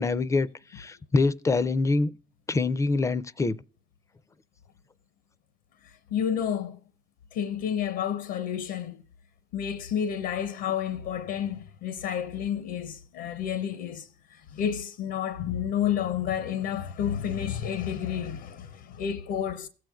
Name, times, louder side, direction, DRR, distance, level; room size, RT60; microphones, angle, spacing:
voice 1, 0.0-2.1 2.5-3.6, left 3 dB, 20° left, 0.4 m, -25 dB
voice 2, 5.8-6.8 7.3-9.0 9.5-19.7, left 9 dB, 85° left, 0.7 m, -30 dB
17.5 x 7.7 x 2.3 m
cardioid pair, 110°, 17 cm